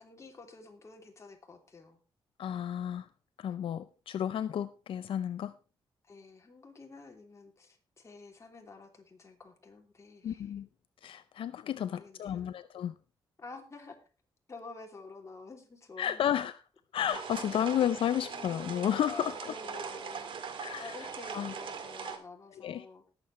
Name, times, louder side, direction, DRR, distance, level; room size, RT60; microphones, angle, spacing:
voice 1, 0.0-2.0 6.1-10.5 11.7-12.5 13.4-14.0 14.5-16.2 18.1-18.7 19.0-20.4 20.8-23.0, left 3 dB, 30° left, 2.9 m, -49 dB
voice 2, 2.4-3.1 3.4-5.5 10.2-10.7 11.0-13.0 16.0-16.6 16.9-19.5 20.6-21.5 22.6-22.9, left 10 dB, 75° left, 0.5 m, -32 dB
sound 1, 17.1-22.2, right 6 dB, 70° right, 2.1 m, -41 dB
20.0 x 7.4 x 3.2 m
cardioid pair, 105°, 9 cm